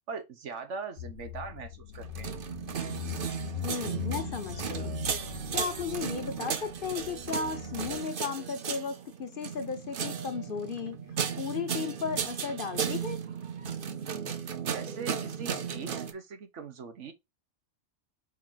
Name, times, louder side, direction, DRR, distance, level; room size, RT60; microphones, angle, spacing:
voice 1, 0.1-2.3 14.7-17.1, right 5 dB, 90° right, 1.4 m, -41 dB
Car / Engine, 1.0-8.0, left 13 dB, 80° left, 0.9 m, -41 dB
sound 1, 2.0-16.1, right 7 dB, 55° right, 0.9 m, -35 dB
voice 2, 3.6-4.9 5.5-11.0 11.4-13.2, left 5 dB, 50° left, 1.0 m, -35 dB
5.6 x 4.3 x 3.9 m
omnidirectional pair, 1.2 m